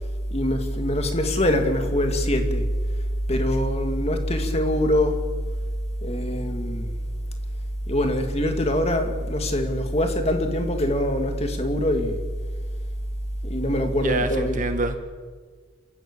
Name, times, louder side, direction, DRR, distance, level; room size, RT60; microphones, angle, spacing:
voice 1, 0.0-2.7 3.3-5.2 6.0-7.0 7.9-12.2 13.4-14.7, equal, 30° left, 6 dB, 2.2 m, -23 dB
voice 2, 14.0-14.9, right 2 dB, 40° right, 8 dB, 1.7 m, -26 dB
27.5 x 13.5 x 8.6 m, 1.5 s
head